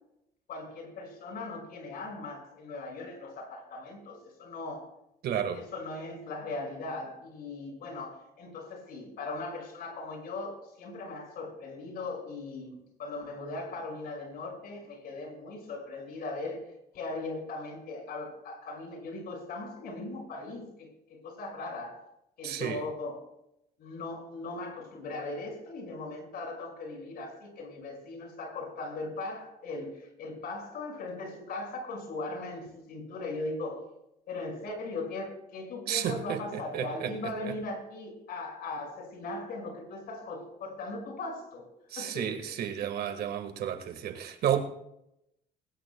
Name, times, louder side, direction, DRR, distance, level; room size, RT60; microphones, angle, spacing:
voice 1, 0.5-4.9 5.5-16.6 16.9-22.0 22.4-23.2 23.8-33.9 34.3-41.7 42.0-42.6, left 2 dB, 65° left, 6.0 m, -39 dB
voice 2, 5.2-5.6 22.4-22.8 35.9-37.1 41.9-44.6, right 9 dB, 70° right, 1.7 m, -32 dB
21.0 x 19.0 x 2.3 m
cardioid pair, 110°, 17 cm